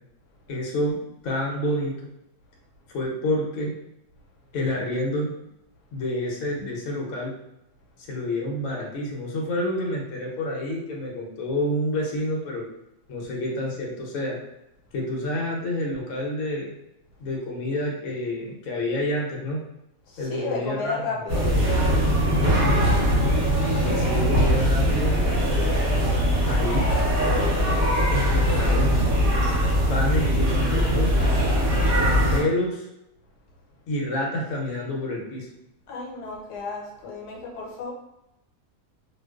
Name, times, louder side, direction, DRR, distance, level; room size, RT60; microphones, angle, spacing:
voice 1, 0.5-2.1 2.9-3.8 4.5-5.3 5.9-7.3 8.1-12.7 13.1-14.4 14.9-16.7 17.2-19.6 20.2-20.9 22.3-22.8 23.8-25.2 26.5-26.9 28.1-29.0 29.9-31.1 32.0-32.9 33.9-35.5, left 1 dB, 65° left, -2 dB, 1.0 m, -28 dB
voice 2, 20.1-21.5 35.9-37.9, left 4 dB, 85° left, -2 dB, 1.2 m, -33 dB
sound 1, 21.3-32.4, equal, 45° right, 0.7 m, -21 dB
2.4 x 2.3 x 2.2 m, 0.87 s
omnidirectional pair, 1.7 m